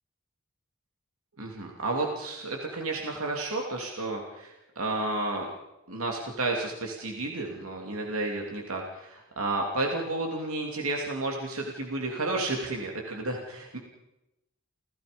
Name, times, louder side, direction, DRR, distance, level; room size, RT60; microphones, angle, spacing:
voice 1, 1.4-5.5 5.9-13.8, right 2 dB, 90° right, 0 dB, 2.8 m, -32 dB
30.0 x 17.0 x 5.2 m, 0.96 s
head